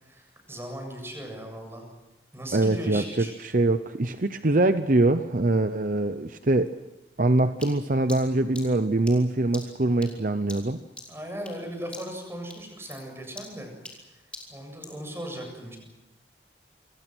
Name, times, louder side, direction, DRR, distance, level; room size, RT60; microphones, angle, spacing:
voice 1, 0.0-1.8 2.3-3.3 11.1-13.7 14.1-14.2 14.5-15.8, equal, 15° right, 3 dB, 7.7 m, -38 dB
voice 2, 2.5-6.7 7.2-10.8, right 2 dB, 50° right, 10 dB, 0.8 m, -23 dB
sound 1, 7.6-11.7 11.9-12.2 12.5-15.0, left 2 dB, 5° left, 4.2 m, -44 dB
28.0 x 25.5 x 6.3 m, 1.0 s
head